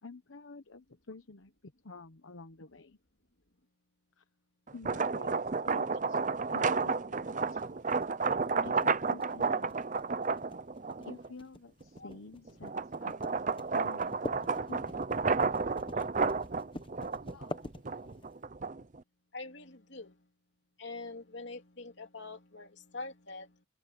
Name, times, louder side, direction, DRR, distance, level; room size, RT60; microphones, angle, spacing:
voice 1, 0.0-3.0 4.2-4.3 4.7-6.2 6.5-7.7 8.5-9.7 11.0-13.1 13.7-15.0 15.9-16.1 17.3-17.6, left 3 dB, 85° left, 1.1 m, -50 dB
sound 1, 4.7-11.3 11.8-19.0, right 4 dB, 40° right, 0.6 m, -32 dB
sound 2, 7.3-18.3, left 1 dB, 25° left, 1.1 m, -46 dB
voice 2, 19.3-20.3 20.8-23.6, left 3 dB, 60° left, 3.1 m, -45 dB
head